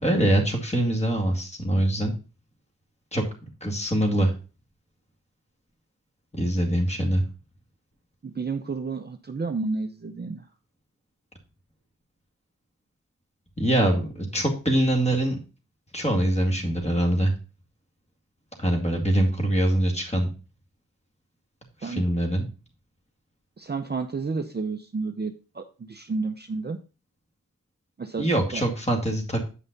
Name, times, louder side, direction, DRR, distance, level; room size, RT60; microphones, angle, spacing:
voice 1, 0.0-2.1 3.1-3.2 3.6-4.3 6.3-7.2 13.6-15.4 15.9-17.3 18.6-20.3 21.8-22.5 28.2-29.5, right 1 dB, 20° left, 1 dB, 2.2 m, -23 dB
voice 2, 8.2-10.4 21.8-22.0 23.6-26.8 28.0-28.6, right 4 dB, 30° right, 6 dB, 0.6 m, -31 dB
8.4 x 5.5 x 3.9 m, 0.33 s
wide cardioid pair, 95°, 32 cm